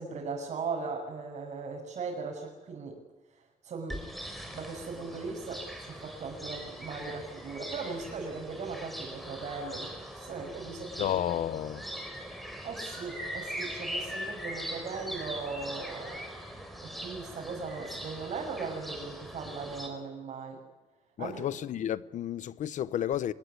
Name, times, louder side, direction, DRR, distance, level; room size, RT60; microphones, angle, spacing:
voice 1, 0.0-3.0 3.6-4.0 4.5-11.1 12.6-16.2 16.8-20.6 21.2-21.4, right 4 dB, 60° right, 6.6 m, -38 dB
sound 1, 3.9-19.9, equal, ahead, 4.5 m, -41 dB
voice 2, 11.0-11.8 21.2-23.3, left 10 dB, 70° left, 0.9 m, -31 dB
26.0 x 21.0 x 9.8 m
wide cardioid pair, 160°, 13 cm